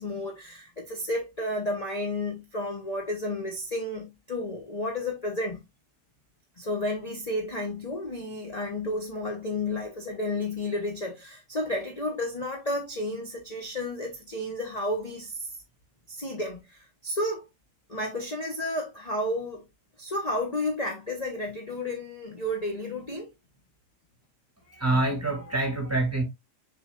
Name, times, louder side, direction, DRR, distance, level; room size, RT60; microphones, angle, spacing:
voice 1, 0.0-5.6 6.6-15.5 16.1-17.5 17.9-19.6 20.0-23.3, left 1 dB, 25° left, 1.4 m, -32 dB
voice 2, 24.7-26.2, right 2 dB, 10° right, 2.6 m, -26 dB
6.9 x 6.2 x 2.4 m
omnidirectional pair, 1.7 m